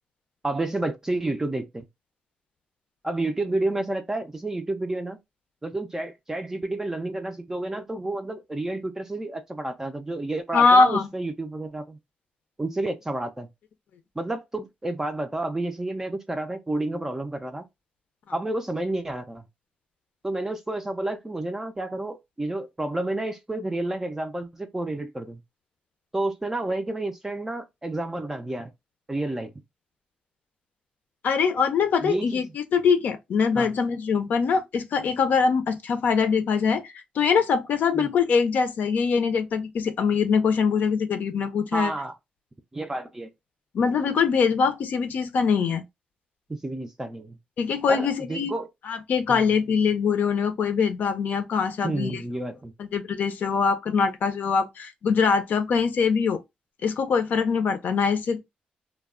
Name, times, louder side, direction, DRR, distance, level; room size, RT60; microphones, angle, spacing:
voice 1, 0.4-1.9 3.0-5.2 5.6-12.0 12.6-13.5 14.2-17.6 18.3-19.4 20.2-25.4 26.1-28.7 29.1-29.5 32.0-32.5 33.6-33.7 37.9-38.1 41.7-42.1 42.7-43.3 46.5-47.4 47.9-48.7 49.3-49.4 51.8-52.7, right 2 dB, 15° right, 0.4 m, -30 dB
voice 2, 10.5-11.1 31.2-41.9 43.7-45.8 47.6-48.5 48.9-52.2 52.8-56.4 56.8-58.4, left 5 dB, 70° left, 0.5 m, -23 dB
2.2 x 2.0 x 3.5 m
cardioid pair, 110°, 3 cm